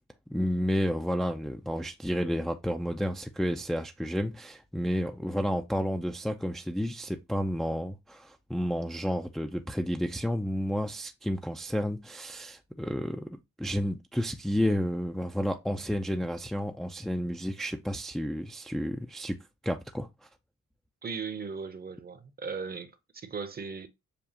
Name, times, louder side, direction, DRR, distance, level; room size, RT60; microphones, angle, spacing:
voice 1, 0.3-19.4 19.6-20.1, equal, ahead, 0.4 m, -31 dB
voice 2, 21.0-23.9, right 5 dB, 30° right, 0.8 m, -37 dB
6.9 x 2.4 x 2.8 m
cardioid pair, 90°, 30 cm